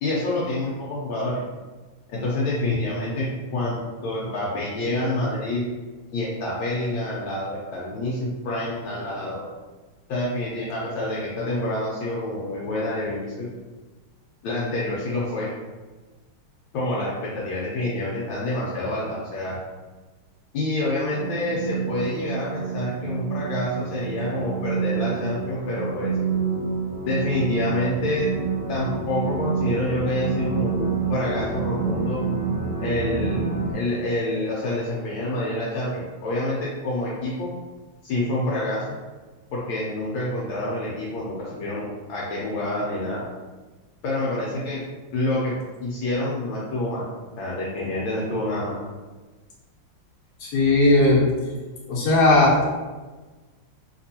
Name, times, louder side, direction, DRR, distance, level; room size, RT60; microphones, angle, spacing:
voice 1, 0.0-1.4 2.1-5.6 6.1-9.4 10.1-13.5 14.4-15.5 16.7-19.6 20.5-26.1 27.0-28.3 28.7-32.2 32.8-33.5 33.7-37.5 38.0-39.0 39.5-43.2 44.0-44.8 45.1-45.5 45.8-47.1 47.4-48.8, left 1 dB, 75° left, -6 dB, 1.3 m, -27 dB
sound 1, 21.1-33.7, right 5 dB, 45° right, 0.6 m, -28 dB
voice 2, 50.4-51.2 51.9-52.6, left 2 dB, 60° left, -5 dB, 1.2 m, -17 dB
3.3 x 2.9 x 2.7 m, 1.3 s
omnidirectional pair, 2.3 m